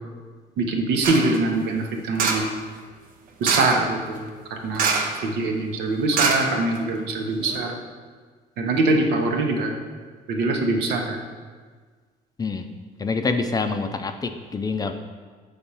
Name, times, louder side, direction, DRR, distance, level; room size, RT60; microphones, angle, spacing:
voice 1, 0.6-2.5 3.4-4.9 5.2-7.8 8.6-9.7 10.3-11.2, right 2 dB, 80° right, 2 dB, 1.0 m, -23 dB
sound 1, 1.0-1.4 2.2-2.6 3.4-3.9 4.7-5.3 5.5-5.6 6.1-7.0 7.5-7.6, right 5 dB, 55° right, 0.7 m, -24 dB
voice 2, 13.0-15.0, left 4 dB, 20° left, 6 dB, 0.4 m, -26 dB
6.8 x 3.5 x 5.5 m, 1.5 s
cardioid pair, 110°, 17 cm